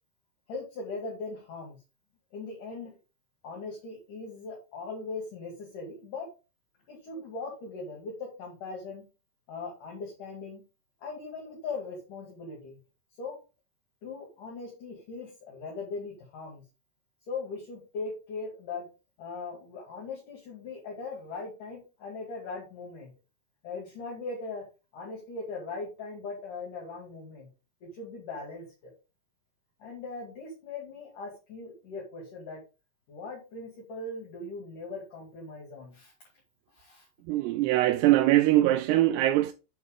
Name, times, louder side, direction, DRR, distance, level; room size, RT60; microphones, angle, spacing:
voice 1, 0.5-1.8 2.3-3.0 3.4-6.3 6.9-9.0 9.5-10.6 11.0-12.8 13.2-13.4 14.0-16.6 17.3-18.9 19.2-23.1 23.6-24.6 24.9-27.5 27.8-28.9 29.8-32.6 33.1-36.1 36.7-37.1, left 3 dB, 55° left, 3.5 m, -39 dB
voice 2, 37.3-39.5, right 15 dB, 85° right, 2.6 m, -22 dB
8.0 x 6.4 x 3.5 m
omnidirectional pair, 4.7 m